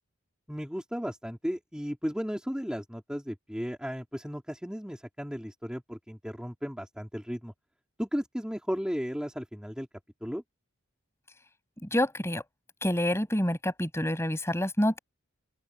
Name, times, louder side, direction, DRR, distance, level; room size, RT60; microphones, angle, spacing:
voice 1, 0.5-7.5 8.0-9.9 10.2-10.4, equal, 5° right, 4.1 m, -35 dB
voice 2, 11.9-12.4 12.8-15.0, left 1 dB, 10° left, 7.9 m, -27 dB
open air
head